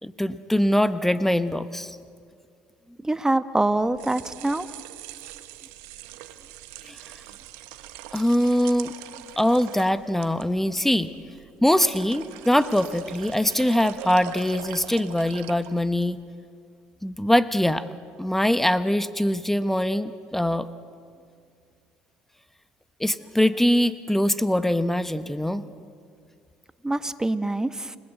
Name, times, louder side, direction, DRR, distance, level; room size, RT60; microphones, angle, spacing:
voice 1, 0.0-2.0 6.8-7.0 8.1-8.9 9.4-11.1 11.6-16.2 17.0-17.9 18.2-20.7 23.0-25.6, left 1 dB, 5° left, 11 dB, 1.2 m, -23 dB
voice 2, 3.0-4.7 26.8-28.0, right 2 dB, 10° right, 11 dB, 1.4 m, -25 dB
sound 1, 3.8-16.1, right 12 dB, 75° right, 1.4 m, -42 dB
29.5 x 19.0 x 8.3 m, 2.2 s
hypercardioid pair, 65°, 5 cm